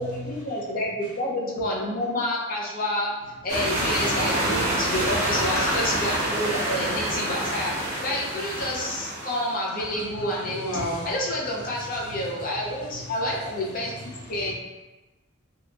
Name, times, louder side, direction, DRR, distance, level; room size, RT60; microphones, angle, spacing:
voice 1, 0.0-3.2 3.4-10.7 11.0-13.9 14.3-14.5, left 1 dB, 40° left, -3 dB, 0.5 m, -29 dB
sound 1, 3.5-9.6, right 1 dB, 35° right, 0.8 m, -27 dB
voice 2, 10.1-11.1 11.9-13.1 13.9-14.5, equal, 90° left, -6 dB, 0.9 m, -34 dB
2.8 x 2.4 x 2.3 m, 1.1 s
head